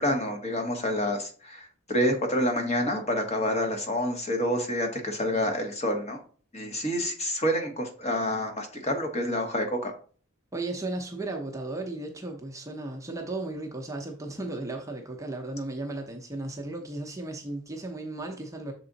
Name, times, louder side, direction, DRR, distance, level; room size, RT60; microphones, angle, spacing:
voice 1, 0.0-6.2 6.5-9.9, equal, 30° left, 1.2 m, -28 dB
voice 2, 10.5-18.7, right 2 dB, 15° right, 0.7 m, -35 dB
6.7 x 3.6 x 3.9 m
head